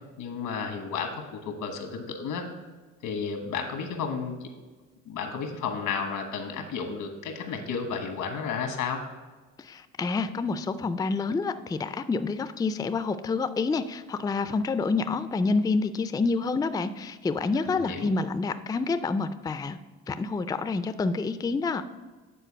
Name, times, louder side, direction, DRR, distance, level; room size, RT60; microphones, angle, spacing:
voice 1, 0.2-2.4 3.0-4.3 5.0-9.0 17.5-18.1, left 5 dB, 85° left, 5 dB, 1.3 m, -32 dB
voice 2, 9.6-19.8 20.1-21.8, left 4 dB, 15° left, 11 dB, 0.3 m, -28 dB
9.2 x 4.1 x 5.1 m, 1.3 s
cardioid pair, 90°, 30 cm